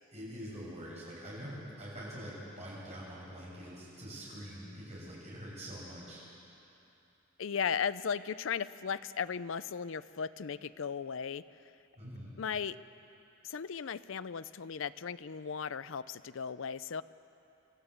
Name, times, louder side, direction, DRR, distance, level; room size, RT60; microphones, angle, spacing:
voice 1, 0.1-6.2 12.0-12.3, equal, 30° right, -6 dB, 7.0 m, -45 dB
voice 2, 7.4-11.4 12.4-12.8 13.4-17.0, left 6 dB, 65° left, 15 dB, 0.5 m, -36 dB
27.5 x 13.5 x 8.3 m, 2.9 s
head